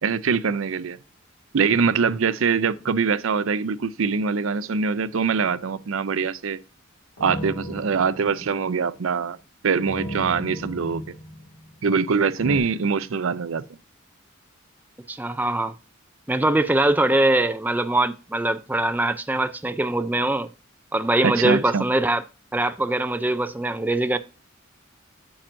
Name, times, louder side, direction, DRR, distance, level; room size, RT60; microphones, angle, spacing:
voice 1, 0.0-1.0 1.5-6.6 7.2-9.4 9.6-11.0 11.8-13.6 21.2-21.8, right 5 dB, 75° right, 0.5 m, -23 dB
sound 1, 5.4-5.9 7.2-9.0 9.8-12.0 12.4-12.6, equal, 70° left, 2.0 m, -35 dB
voice 2, 15.1-15.7 16.3-20.5 20.9-22.2 22.5-24.2, right 2 dB, 10° right, 0.4 m, -22 dB
8.7 x 7.4 x 2.6 m
head